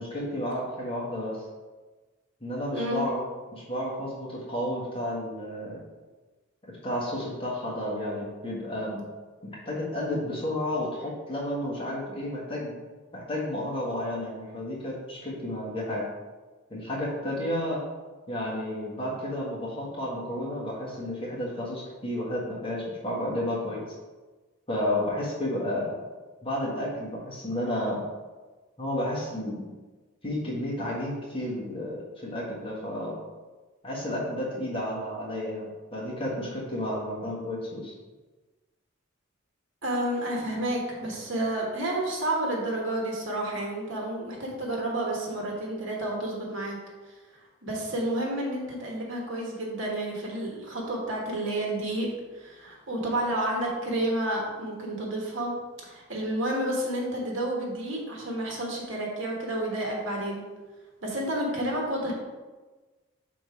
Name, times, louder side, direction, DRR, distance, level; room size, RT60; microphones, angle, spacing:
voice 1, 0.0-1.4 2.4-3.2 3.5-5.8 6.7-9.0 9.4-12.7 13.1-16.1 16.7-17.8 18.3-23.8 24.7-25.9 26.4-28.0 28.8-29.7 30.2-33.2 33.8-37.9, left 1 dB, 25° left, -5 dB, 1.3 m, -32 dB
voice 2, 2.7-3.0 35.9-36.0 39.8-46.8 47.0-60.4 61.0-62.1, right 1 dB, 65° right, -1 dB, 1.3 m, -30 dB
5.2 x 3.8 x 4.8 m, 1.3 s
head